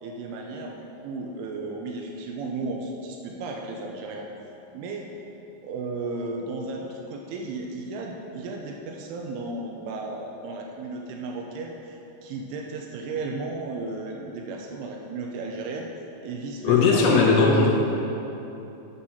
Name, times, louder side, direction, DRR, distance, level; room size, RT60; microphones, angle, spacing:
voice 1, 0.0-4.3 4.7-5.1 5.6-15.9 16.2-17.0 17.4-17.7, right 3 dB, 80° right, 1 dB, 2.9 m, -34 dB
voice 2, 16.6-17.8, left 4 dB, 80° left, -1 dB, 3.7 m, -18 dB
8.9 x 6.3 x 5.7 m, 2.9 s
omnidirectional pair, 5.8 m